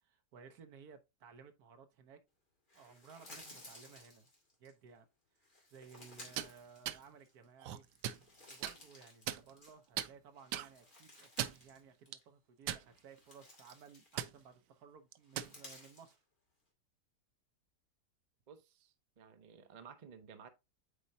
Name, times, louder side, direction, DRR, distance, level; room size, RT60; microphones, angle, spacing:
voice 1, 0.0-2.2 2.7-4.3 4.6-5.1 5.7-7.8 8.5-16.2, right 6 dB, 70° right, 1.4 m, -58 dB
sound 1, 2.7-4.7 5.4-7.4 7.8-10.0 10.3-11.8 12.1-12.2 12.8-14.5 15.2-16.1, left 1 dB, 30° left, 2.5 m, -57 dB
sound 2, 6.2-6.5 6.9-7.0 7.6-8.2 8.6-8.8 9.3-9.7 10.0-10.1 10.5-10.7 11.2-11.7 12.1-12.2 12.7-13.2 13.5-13.7 14.2-14.3 15.1-15.5, right 12 dB, 90° right, 1.2 m, -39 dB
voice 2, 18.5-20.5, right 6 dB, 45° right, 0.6 m, -55 dB
8.2 x 4.4 x 2.7 m
omnidirectional pair, 1.8 m